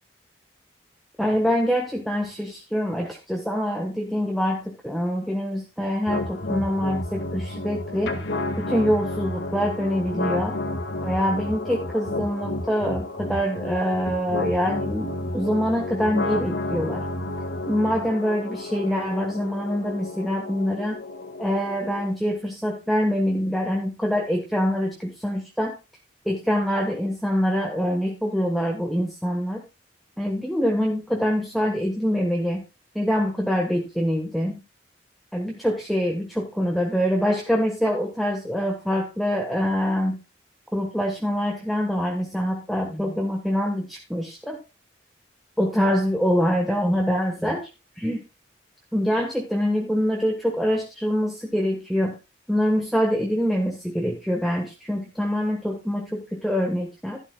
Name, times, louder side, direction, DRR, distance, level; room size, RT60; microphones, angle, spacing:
voice 1, 1.2-8.1 8.6-10.6 11.0-17.1 17.7-21.0 21.4-25.8 26.2-29.6 30.2-32.6 32.9-34.6 35.3-40.2 40.7-44.6 45.6-47.7 48.0-48.2 48.9-52.2 52.5-57.2, equal, ahead, 0 dB, 1.3 m, -25 dB
sound 1, 6.1-22.1, left 2 dB, 75° left, 1.7 m, -31 dB
12.0 x 11.5 x 2.3 m, 0.26 s
head